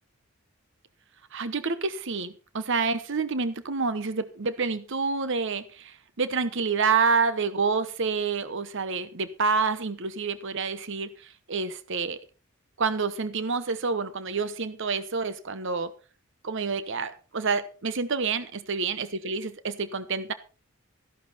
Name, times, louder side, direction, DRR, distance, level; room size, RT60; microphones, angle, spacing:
voice 1, 1.3-12.2 12.8-15.9 16.4-20.3, right 4 dB, 60° right, 1.0 m, -28 dB
13.5 x 11.5 x 4.2 m
head